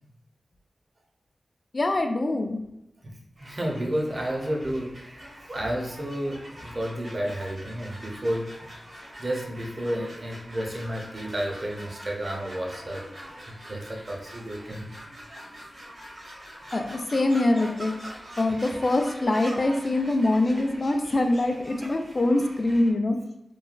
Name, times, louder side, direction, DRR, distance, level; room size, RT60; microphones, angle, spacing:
voice 1, 1.7-2.6 16.7-17.9 18.4-23.2, left 2 dB, 50° left, 4 dB, 0.3 m, -24 dB
voice 2, 3.4-8.7 9.2-13.1 13.5-14.9, equal, 45° right, 0 dB, 0.6 m, -31 dB
sound 1, 3.4-22.9, equal, 60° right, 1.0 m, -44 dB
3.0 x 2.2 x 2.4 m, 0.85 s
wide cardioid pair, 65°, 0 cm